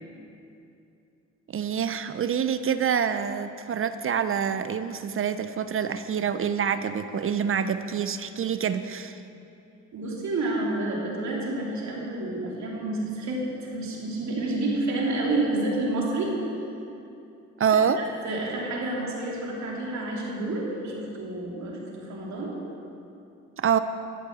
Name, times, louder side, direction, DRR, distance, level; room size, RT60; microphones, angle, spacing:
voice 1, 1.5-9.2 17.6-18.0 23.6-23.8, right 7 dB, 45° right, 11 dB, 0.6 m, -26 dB
voice 2, 9.9-16.3 17.7-17.8 18.2-22.6, right 2 dB, 65° right, -3 dB, 3.3 m, -29 dB
13.5 x 8.4 x 7.8 m, 2.7 s
cardioid pair, 90°, 30 cm